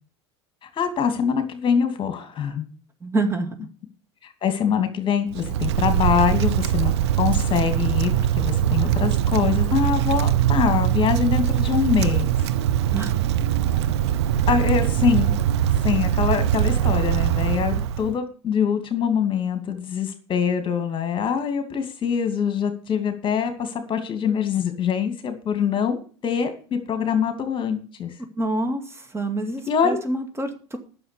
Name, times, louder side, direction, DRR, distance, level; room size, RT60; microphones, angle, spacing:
voice 1, 0.6-2.7 4.4-12.5 14.5-15.3 15.8-28.1 29.7-30.0, left 7 dB, 35° left, 7 dB, 2.5 m, -24 dB
voice 2, 3.0-3.6 12.9-13.1 28.4-30.8, right 2 dB, 20° right, 5 dB, 2.2 m, -27 dB
Wind, 5.3-18.1, right 10 dB, 75° right, 0.8 m, -22 dB
9.8 x 6.8 x 8.4 m, 0.39 s
hypercardioid pair, 85°, 14 cm